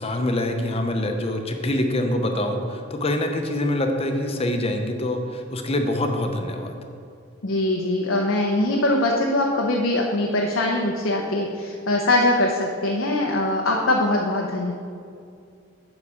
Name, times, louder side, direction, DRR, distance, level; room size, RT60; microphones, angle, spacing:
voice 1, 0.0-6.8, left 1 dB, 30° left, 5 dB, 0.7 m, -25 dB
voice 2, 7.4-14.7, left 1 dB, 85° left, 0 dB, 0.8 m, -22 dB
9.6 x 4.1 x 6.9 m, 2.3 s
head